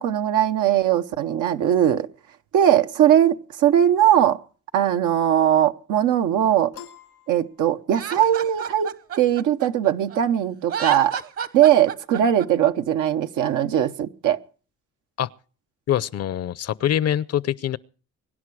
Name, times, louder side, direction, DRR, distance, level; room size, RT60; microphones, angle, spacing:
voice 1, 0.0-2.1 2.5-4.4 4.7-6.7 7.3-8.9 9.2-11.2 11.5-14.4, right 10 dB, 85° right, 1.0 m, -20 dB
Piano, 6.7-8.3, left 10 dB, 90° left, 2.0 m, -46 dB
Laughter, 7.9-10.2 10.6-12.5, right 7 dB, 55° right, 1.2 m, -31 dB
voice 2, 15.9-17.8, left 11 dB, 55° left, 0.7 m, -24 dB
24.0 x 10.5 x 4.8 m
cardioid pair, 90°, 30 cm